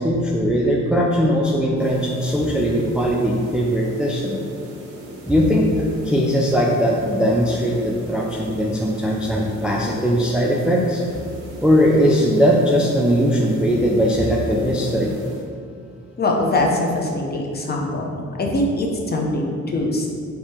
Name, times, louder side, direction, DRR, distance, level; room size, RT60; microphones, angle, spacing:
voice 1, 0.0-4.4 5.3-11.0 11.6-15.1, equal, 5° right, -2 dB, 0.4 m, -19 dB
sound 1, 1.8-15.5, right 1 dB, 60° right, 1.0 m, -39 dB
voice 2, 16.2-18.1 18.4-20.1, left 2 dB, 35° left, 0 dB, 0.7 m, -22 dB
3.5 x 2.9 x 4.2 m, 2.3 s
cardioid pair, 90°, 30 cm